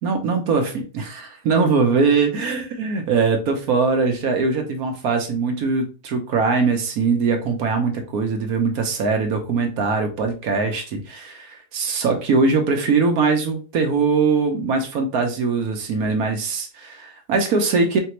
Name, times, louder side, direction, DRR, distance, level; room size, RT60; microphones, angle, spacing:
voice 1, 0.0-18.0, right 4 dB, 65° right, 4 dB, 1.2 m, -21 dB
3.8 x 3.4 x 3.0 m, 0.34 s
omnidirectional pair, 1.8 m